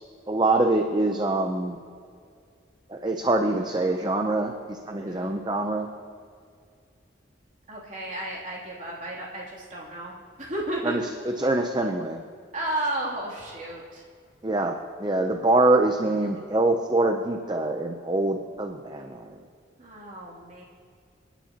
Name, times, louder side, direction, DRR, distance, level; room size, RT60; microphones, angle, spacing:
voice 1, 0.3-1.8 2.9-5.9 10.8-11.0 11.3-12.2 14.4-19.3, right 2 dB, 25° right, 4 dB, 0.6 m, -24 dB
voice 2, 5.0-5.4 7.7-10.1 10.4-11.0 12.5-14.0 19.8-20.6, right 1 dB, 40° right, -4 dB, 2.9 m, -33 dB
26.5 x 10.0 x 2.9 m, 2.3 s
head